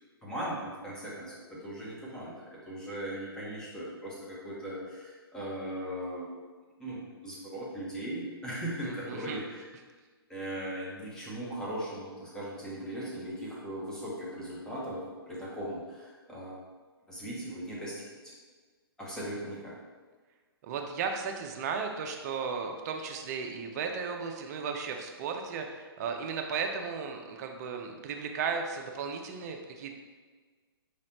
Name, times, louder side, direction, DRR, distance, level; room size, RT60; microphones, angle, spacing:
voice 1, 0.2-6.3 6.8-9.7 10.3-16.6 17.1-18.0 19.0-19.8, right 1 dB, 5° left, -6 dB, 1.0 m, -38 dB
voice 2, 8.8-9.4 20.6-29.9, right 5 dB, 40° right, 4 dB, 0.5 m, -35 dB
4.9 x 3.1 x 2.9 m, 1.4 s
hypercardioid pair, 125°, 13 cm